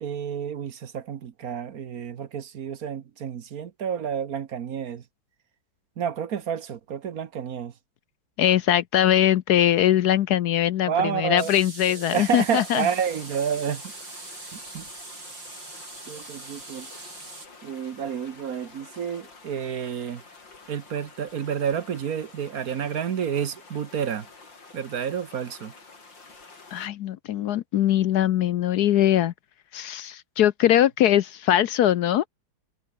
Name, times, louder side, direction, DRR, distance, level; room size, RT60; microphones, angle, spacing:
voice 1, 0.0-5.0 6.0-7.7 10.9-11.5 12.1-13.9 14.5-14.9 16.1-16.9 17.6-20.2 20.7-24.3 24.7-25.7, right 8 dB, 55° right, 1.4 m, -30 dB
voice 2, 8.4-12.9 26.7-29.3 29.7-32.2, left 11 dB, 70° left, 1.1 m, -21 dB
sound 1, 11.4-17.5, right 3 dB, 85° right, 7.0 m, -42 dB
sound 2, 12.6-26.9, left 3 dB, 85° left, 5.1 m, -49 dB
omnidirectional pair, 2.0 m